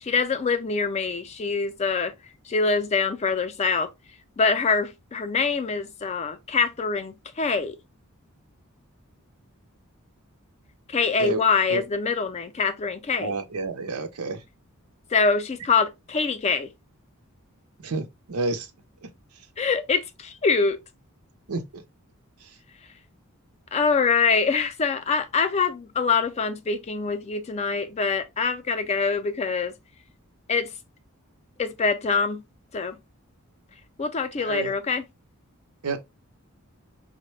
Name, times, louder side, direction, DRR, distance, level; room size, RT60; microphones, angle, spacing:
voice 1, 0.0-2.1 2.5-3.9 4.4-7.8 10.9-13.3 15.1-16.7 19.6-20.8 23.7-29.7 30.5-30.7 31.6-32.4 32.7-33.0 34.0-35.0, left 5 dB, 30° left, 0.4 m, -24 dB
voice 2, 13.2-14.4 17.8-18.7 19.0-19.1 21.5-21.8 22.4-22.5 34.4-34.7 35.8-36.0, right 3 dB, 90° right, 0.6 m, -29 dB
3.8 x 2.1 x 3.0 m
head